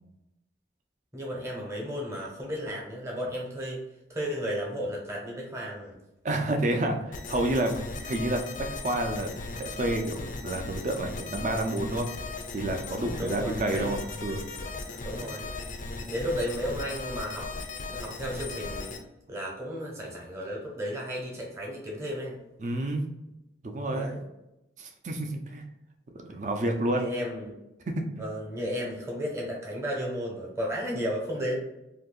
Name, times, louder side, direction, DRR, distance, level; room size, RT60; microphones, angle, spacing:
voice 1, 1.1-3.8 4.1-6.0 8.0-8.1 13.2-13.9 15.0-15.5 16.0-17.5 17.9-18.9 19.3-22.4 23.9-24.2 26.9-27.6 28.2-31.6, equal, 15° right, -2 dB, 0.8 m, -33 dB
voice 2, 6.2-9.3 9.6-12.1 12.5-14.4 14.9-15.3 22.6-23.1 23.6-24.1 24.8-25.6 26.1-27.1 27.9-28.0, right 1 dB, 40° right, 3 dB, 0.5 m, -29 dB
sound 1, 7.1-19.0, left 3 dB, 45° left, 0.4 m, -37 dB
2.7 x 2.6 x 3.8 m, 0.90 s
head